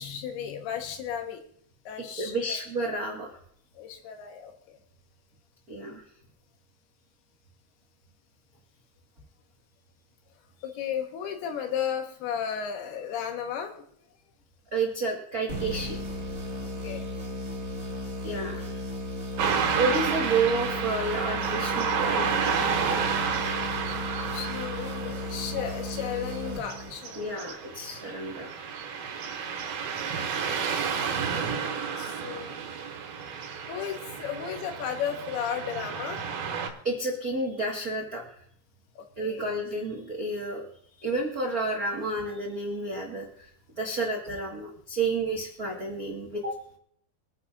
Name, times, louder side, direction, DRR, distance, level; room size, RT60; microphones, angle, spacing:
voice 1, 0.0-1.4 1.9-2.6 3.8-4.8 10.6-13.7 16.8-17.1 24.2-27.5 32.0-32.6 33.7-36.2 39.0-39.5, left 8 dB, 85° left, 5 dB, 3.2 m, -34 dB
voice 2, 2.2-3.4 5.7-6.0 14.7-16.0 18.2-18.8 19.2-22.4 27.1-28.5 29.0-29.1 36.8-38.2 39.2-40.6 41.0-43.5 43.8-46.5, right 3 dB, 85° right, -2 dB, 0.8 m, -30 dB
sound 1, 15.5-27.2, left 1 dB, 25° right, 2.2 m, -35 dB
Car passing by / Traffic noise roadway noise, 19.4-36.7, right 6 dB, 70° right, 3.0 m, -31 dB
25.5 x 9.8 x 2.5 m, 0.67 s
omnidirectional pair, 4.5 m